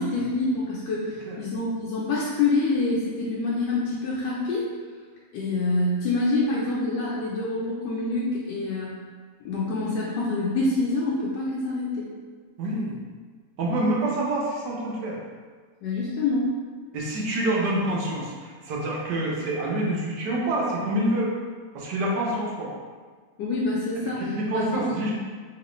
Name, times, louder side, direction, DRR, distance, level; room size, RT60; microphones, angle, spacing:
voice 1, 0.0-4.7 5.3-9.0 9.4-12.1 15.8-16.5 23.4-24.3 24.5-24.8, left 2 dB, 85° left, -6 dB, 1.3 m, -26 dB
voice 2, 12.6-13.0 13.6-15.2 16.9-21.3 21.7-22.7 24.2-25.1, right 1 dB, 80° right, -3 dB, 1.3 m, -27 dB
3.1 x 2.9 x 3.0 m, 1.5 s
omnidirectional pair, 1.8 m